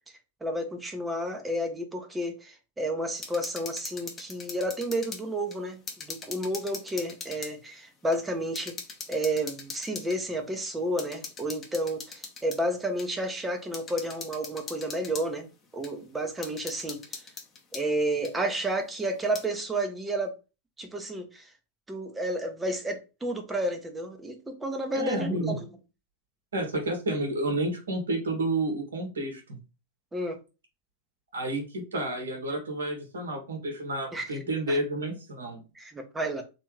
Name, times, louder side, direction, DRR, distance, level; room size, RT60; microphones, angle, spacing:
voice 1, 0.4-8.7 9.1-15.5 15.7-17.3 17.7-20.3 20.8-21.5 21.9-25.7 30.1-30.4 34.1-34.4 34.7-34.8 35.7-36.4, right 1 dB, 10° right, 0.9 m, -31 dB
sound 1, 3.2-5.2 5.5-7.5 8.1-8.2 8.6-10.2 11.0-12.6 13.0-13.1 13.7-15.3 15.8-15.9 16.4-17.8 18.2-18.3 19.1-19.4, left 5 dB, 20° left, 1.0 m, -41 dB
voice 2, 25.0-25.5 26.5-29.4 31.3-35.6, right 1 dB, 65° right, 1.3 m, -30 dB
3.3 x 2.9 x 3.1 m
figure-of-eight pair, 90°, 0 cm